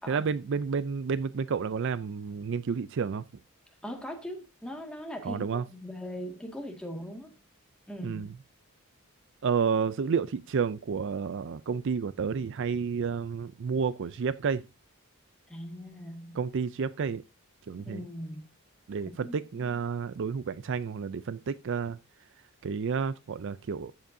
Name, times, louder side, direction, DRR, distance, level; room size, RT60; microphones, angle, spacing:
voice 1, 0.1-3.2 5.2-5.6 8.0-8.3 9.4-14.6 16.3-17.2 17.7-18.0 18.9-22.0 22.6-23.9, right 5 dB, 55° right, 0.4 m, -30 dB
voice 2, 3.8-7.3 7.9-8.3 15.5-16.4 17.9-18.5 19.2-19.8, equal, 5° left, 1.9 m, -40 dB
14.0 x 7.8 x 2.7 m
head